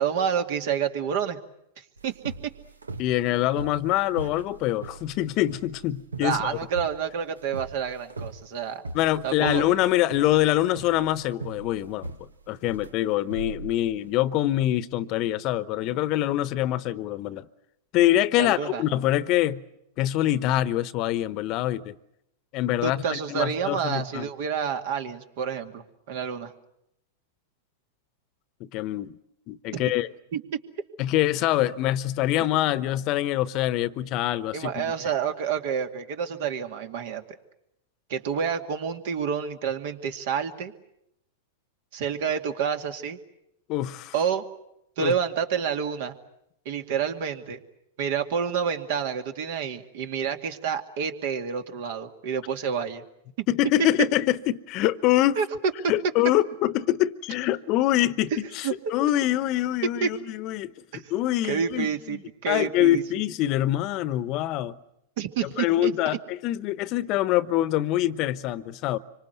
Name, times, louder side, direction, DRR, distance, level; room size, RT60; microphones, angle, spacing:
voice 1, 0.0-1.4 2.0-2.5 6.2-8.8 9.2-9.7 18.4-18.8 22.8-26.5 30.3-30.4 32.4-32.5 34.5-37.2 38.1-40.7 41.9-43.2 44.1-44.4 45.0-46.1 46.7-47.6 48.0-53.0 55.4-55.5 58.3-58.9 60.0-60.1 60.9-61.1 61.4-63.0 65.2-66.2, right 7 dB, 60° right, 2.3 m, -29 dB
sound 1, 2.0-14.2, right 3 dB, 90° right, 1.1 m, -40 dB
voice 2, 3.0-6.6 8.9-17.5 17.9-19.6 20.0-22.0 22.5-24.3 28.6-29.2 29.5-30.1 31.0-34.9 43.7-44.1 45.0-45.1 53.5-55.4 55.9-60.7 61.1-62.2 62.5-64.8 65.6-69.0, left 14 dB, 45° left, 1.0 m, -25 dB
25.5 x 25.0 x 8.1 m
hypercardioid pair, 100°, 0 cm